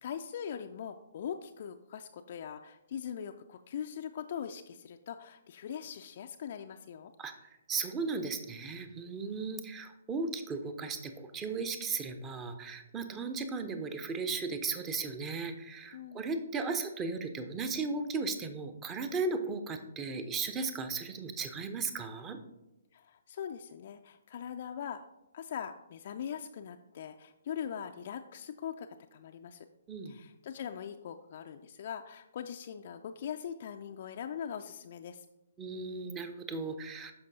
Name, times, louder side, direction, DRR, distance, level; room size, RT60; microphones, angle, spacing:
voice 1, 0.0-7.1 15.9-16.2 22.9-25.0 25.3-29.7 30.1-35.3, left 8 dB, 45° left, 6 dB, 0.3 m, -41 dB
voice 2, 7.2-22.4 29.9-30.1 35.6-37.1, right 4 dB, 15° right, 8 dB, 0.6 m, -36 dB
13.5 x 5.1 x 2.7 m, 0.95 s
figure-of-eight pair, 130°, 0 cm